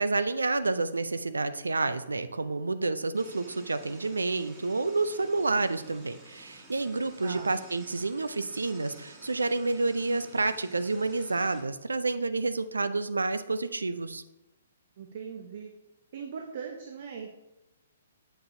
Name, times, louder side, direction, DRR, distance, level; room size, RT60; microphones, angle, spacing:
voice 1, 0.0-14.2, right 3 dB, 70° right, 12 dB, 0.4 m, -29 dB
sound 1, 3.1-11.6, right 2 dB, 10° right, 1.8 m, -52 dB
voice 2, 7.2-7.6 15.0-15.7 16.1-17.3, right 6 dB, 45° right, 2 dB, 0.8 m, -40 dB
7.8 x 6.8 x 2.7 m, 0.97 s
figure-of-eight pair, 120°, 0 cm